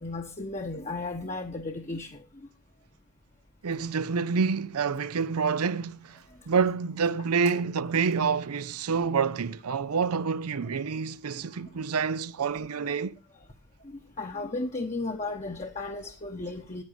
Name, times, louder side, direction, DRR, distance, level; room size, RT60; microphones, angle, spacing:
voice 1, 0.0-2.2 8.9-9.0 9.7-9.8 10.6-10.7 12.5-12.9 13.8-16.8, left 2 dB, 30° left, 1.0 m, -35 dB
voice 2, 3.6-13.1, right 5 dB, 80° right, 0.6 m, -28 dB
9.6 x 9.5 x 6.9 m
head